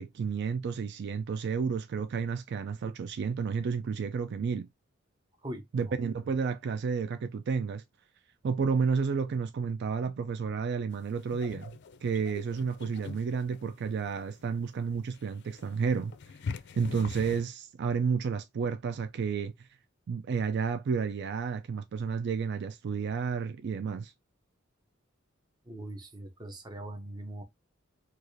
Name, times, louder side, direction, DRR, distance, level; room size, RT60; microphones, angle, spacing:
voice 1, 0.0-4.7 5.7-7.8 8.4-16.1 16.8-19.7 20.1-24.1, right 5 dB, 55° right, 0.3 m, -31 dB
voice 2, 5.4-6.0 25.7-27.4, right 1 dB, 20° right, 0.6 m, -41 dB
sound 1, 10.9-17.5, left 5 dB, 60° left, 0.4 m, -44 dB
4.6 x 2.4 x 2.6 m
head